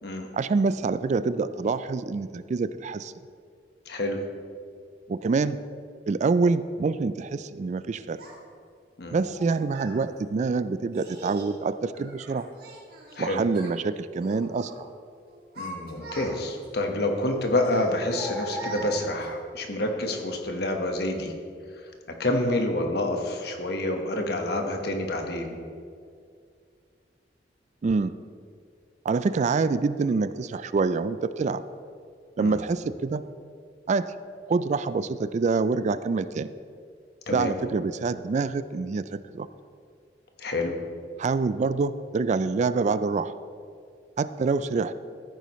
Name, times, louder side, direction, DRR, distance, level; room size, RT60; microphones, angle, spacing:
voice 1, 0.3-3.1 5.1-5.6 6.1-8.2 9.1-12.5 13.2-14.9 27.8-28.1 29.0-31.6 32.4-33.2 33.9-34.1 34.5-36.5 37.3-39.5 41.2-43.3 44.2-44.9, right 4 dB, 40° right, 14 dB, 0.3 m, -26 dB
voice 2, 3.9-4.2 9.0-9.2 13.2-13.4 15.6-21.3 22.2-25.6 32.4-32.6 37.3-37.5 40.4-40.7, left 1 dB, 65° left, 3 dB, 1.3 m, -28 dB
Child speech kid speaking, 8.2-8.3 9.2-10.0 10.9-11.5 11.9-13.2 13.5-13.8 14.2-14.8 15.3-16.6 17.6-19.4, right 1 dB, 60° right, 2.1 m, -40 dB
14.5 x 9.6 x 3.1 m, 2.2 s
head